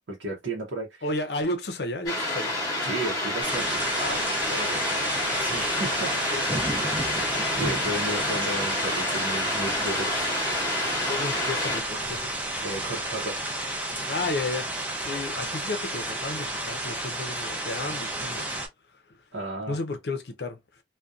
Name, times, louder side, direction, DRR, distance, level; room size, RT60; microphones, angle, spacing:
voice 1, 0.1-1.1 2.8-3.9 5.4-6.1 7.5-10.3 12.6-13.4 19.3-19.8, right 2 dB, 80° right, 0.7 m, -33 dB
voice 2, 1.0-2.6 4.0-4.8 5.8-5.9 6.3-6.7 7.6-7.8 8.0-8.2 11.0-12.4 14.1-14.7 15.0-18.5 18.9-19.2 19.7-20.8, left 2 dB, 60° left, 0.5 m, -33 dB
sound 1, 2.1-11.8, left 2 dB, 20° left, 0.8 m, -29 dB
sound 2, 3.4-18.7, right 1 dB, 10° right, 0.5 m, -31 dB
2.6 x 2.2 x 2.3 m
head